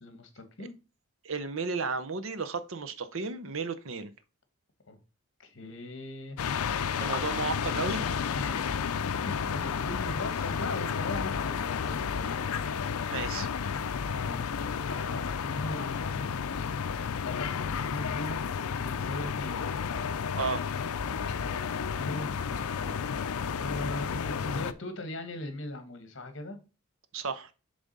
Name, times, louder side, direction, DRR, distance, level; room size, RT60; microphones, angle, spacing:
voice 1, 0.0-0.7 4.9-5.0 5.4-6.6 8.3-8.7 9.3-12.7 14.1-14.4 14.9-16.7 16.9-20.1 21.7-23.2 23.5-26.6, left 2 dB, 55° left, 1.3 m, -40 dB
voice 2, 1.2-4.1 7.0-8.0 13.1-13.5 20.3-20.6 27.1-27.5, right 4 dB, 65° right, 0.7 m, -33 dB
sound 1, 6.4-24.7, left 6 dB, 80° left, 0.5 m, -32 dB
7.1 x 3.5 x 5.3 m
head